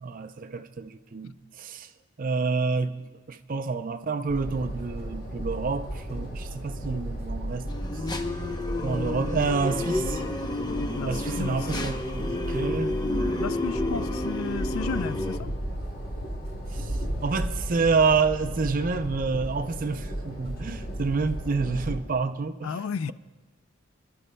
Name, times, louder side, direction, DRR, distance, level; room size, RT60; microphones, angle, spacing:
voice 1, 0.0-1.9 2.2-7.7 8.8-10.2 11.0-13.0 16.7-22.8, right 4 dB, 40° right, 0.5 m, -28 dB
sound 1, 4.3-22.0, right 1 dB, 50° left, 3.0 m, -34 dB
sound 2, 7.7-15.4, left 2 dB, 20° left, 0.6 m, -30 dB
voice 2, 10.9-11.7 13.4-15.5 22.6-23.1, left 5 dB, 85° left, 0.4 m, -33 dB
27.5 x 12.0 x 2.2 m
head